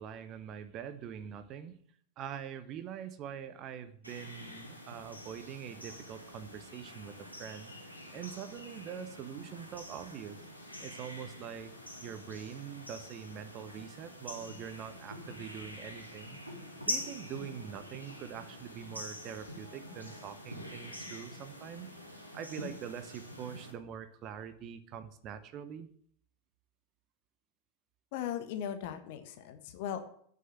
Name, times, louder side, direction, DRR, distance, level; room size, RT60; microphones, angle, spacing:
voice 1, 0.0-1.8 2.2-7.7 8.1-10.4 10.8-11.7 12.0-16.4 16.8-21.9 22.3-25.9, right 8 dB, 35° right, 11 dB, 1.0 m, -44 dB
sound 1, 4.0-23.7, left 1 dB, 90° left, 2.6 m, -45 dB
voice 2, 28.1-30.0, left 9 dB, 50° left, 7 dB, 1.4 m, -38 dB
9.1 x 6.6 x 8.1 m, 0.63 s
figure-of-eight pair, 90°, 0 cm